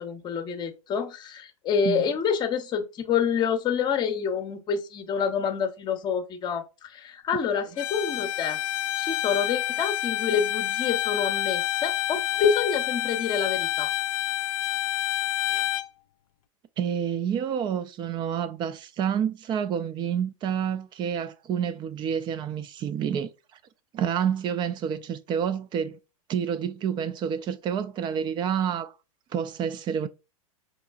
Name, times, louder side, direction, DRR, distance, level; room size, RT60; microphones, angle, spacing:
voice 1, 0.0-8.6 9.0-13.9, left 7 dB, 25° left, 0.8 m, -27 dB
Bowed string instrument, 7.8-15.9, left 13 dB, 70° left, 0.5 m, -28 dB
voice 2, 16.8-23.3 23.9-26.0 26.3-28.9 29.3-30.1, right 8 dB, 25° right, 0.4 m, -28 dB
5.2 x 2.9 x 2.4 m
hypercardioid pair, 105°, 18 cm